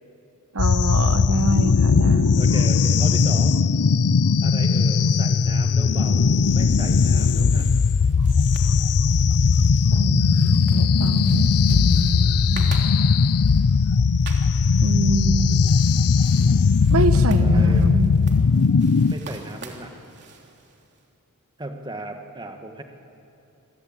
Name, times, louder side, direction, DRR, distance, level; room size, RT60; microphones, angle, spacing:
voice 1, 0.5-2.4 9.9-12.7 14.8-15.6 16.9-18.2, right 1 dB, 70° right, 9 dB, 1.0 m, -26 dB
sound 1, 0.6-19.1, left 5 dB, 85° left, 0.5 m, -18 dB
voice 2, 1.9-3.6 4.4-7.8 16.3-16.9 17.4-17.9 19.1-19.9 21.6-22.8, right 1 dB, 20° right, 5 dB, 1.6 m, -36 dB
sound 2, 6.2-21.0, right 4 dB, 50° right, 3.1 m, -46 dB
27.0 x 22.0 x 8.9 m, 2.8 s
head